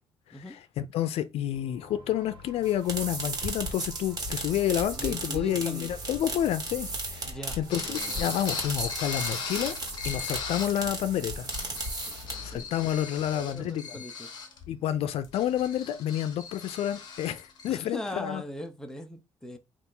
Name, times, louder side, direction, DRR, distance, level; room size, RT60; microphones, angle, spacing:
voice 1, 0.8-9.7 10.1-11.5 12.4-13.9 14.7-18.4, left 11 dB, 80° left, 0.5 m, -29 dB
sound 1, 1.5-12.5, equal, 55° right, 1.3 m, -48 dB
sound 2, 2.6-12.6, right 2 dB, 40° right, 1.4 m, -35 dB
voice 2, 5.0-5.9 7.3-8.4 12.0-13.1 13.3-14.3 17.7-19.6, left 1 dB, 5° left, 0.6 m, -40 dB
sound 3, 7.7-10.8 11.3-17.7, left 5 dB, 45° left, 1.0 m, -39 dB
4.1 x 2.5 x 3.7 m
cardioid pair, 140°, 10 cm